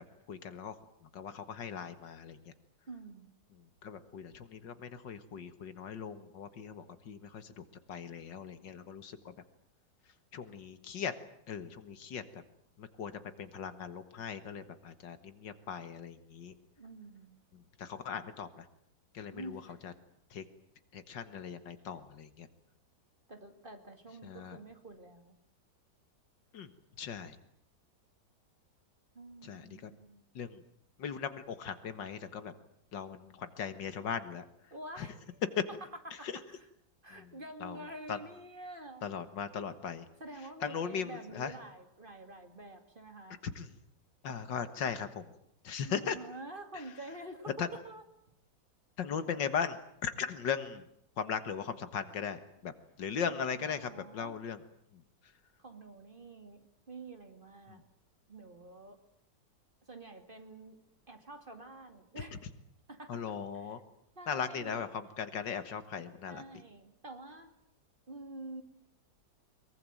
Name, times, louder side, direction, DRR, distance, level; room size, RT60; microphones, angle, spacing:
voice 1, 0.3-0.8 1.0-2.5 3.8-9.3 10.3-11.1 11.5-12.2 12.8-16.5 17.5-18.7 19.1-19.9 20.3-20.4 20.9-22.5 24.2-24.6 26.5-26.7 27.0-27.4 29.4-29.9 30.4-30.6 31.0-32.5 32.9-34.4 35.0-35.1 35.6-35.7 36.2-36.4 37.1-37.3 37.6-37.8 38.1-38.2 39.0-40.1 40.6-41.5 43.4-43.7 44.2-45.3 45.6-46.2 47.6-47.7 49.0-50.8 51.2-52.7 53.0-54.6 54.9-55.0 57.7-57.8 63.1-63.8 64.3-66.4, left 7 dB, 75° left, 11 dB, 2.1 m, -38 dB
voice 2, 2.9-3.3 16.8-17.4 19.3-19.8 23.3-25.4 29.1-30.2 34.7-35.4 35.7-36.7 37.0-39.0 40.2-43.4 45.8-48.0 53.1-54.4 55.6-57.8 58.3-59.0 59.9-60.8 61.1-62.4 62.9-63.2 63.5-63.8 64.2-64.9 66.3-67.5 68.1-68.6, right 2 dB, 30° right, 7 dB, 2.4 m, -48 dB
23.0 x 22.0 x 9.1 m, 0.72 s
omnidirectional pair, 2.0 m